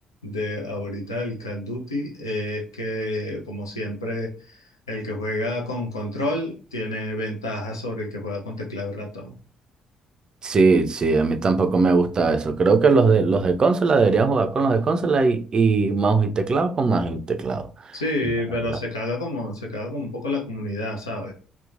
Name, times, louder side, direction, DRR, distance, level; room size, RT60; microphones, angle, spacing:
voice 1, 0.2-9.3 17.9-21.3, left 1 dB, 90° left, 0.4 m, -29 dB
voice 2, 10.4-18.0, right 4 dB, 40° right, 0.4 m, -20 dB
2.9 x 2.1 x 2.4 m
figure-of-eight pair, 45°, 2 cm